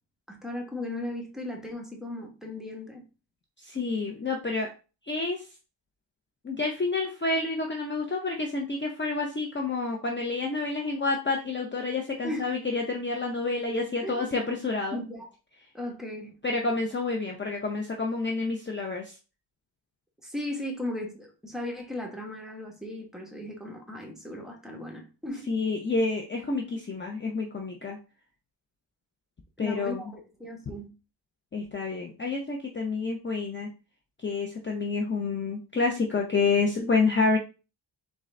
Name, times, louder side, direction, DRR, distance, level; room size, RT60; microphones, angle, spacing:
voice 1, 0.3-3.0 12.2-12.5 14.0-14.2 14.9-15.3 15.7-16.3 20.2-25.5 29.6-30.9, left 1 dB, ahead, 1.0 m, -36 dB
voice 2, 3.6-4.7 5.1-5.4 6.4-15.0 16.4-19.1 25.5-28.0 29.6-30.0 31.5-33.7 34.2-37.4, left 3 dB, 25° left, 0.6 m, -28 dB
3.8 x 3.7 x 3.2 m
wide cardioid pair, 115°, 45 cm